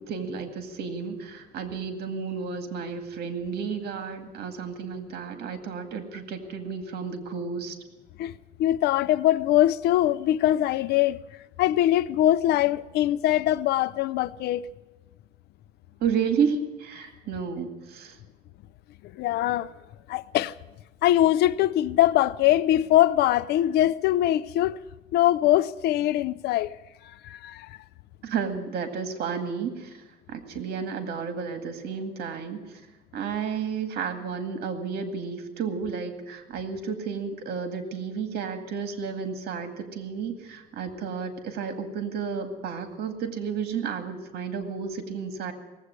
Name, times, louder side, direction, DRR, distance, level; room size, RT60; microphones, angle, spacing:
voice 1, 0.0-7.8 16.0-18.2 28.2-30.0 30.3-32.8 33.1-45.5, right 6 dB, 70° right, 2.1 m, -32 dB
voice 2, 8.2-11.2 11.6-14.7 19.1-19.7 20.1-20.5 21.0-24.8 25.1-26.7 27.2-27.8, left 13 dB, 75° left, 0.6 m, -22 dB
18.0 x 8.2 x 9.6 m
cardioid pair, 110°, 17 cm